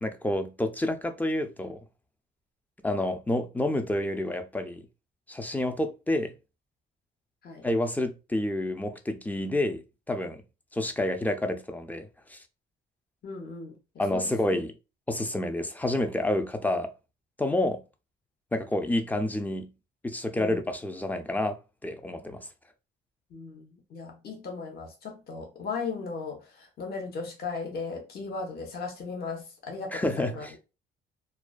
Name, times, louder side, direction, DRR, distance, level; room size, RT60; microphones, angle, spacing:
voice 1, 0.0-1.8 2.8-4.9 5.3-6.3 7.6-10.4 10.7-12.4 14.0-14.8 15.1-16.9 17.4-17.8 18.5-19.7 20.0-22.5 29.9-30.5, left 1 dB, 10° left, 0.3 m, -29 dB
voice 2, 13.2-13.7 14.1-14.3 20.3-20.6 23.3-30.5, left 4 dB, 50° left, 0.8 m, -37 dB
2.3 x 2.2 x 2.3 m
cardioid pair, 90°, 20 cm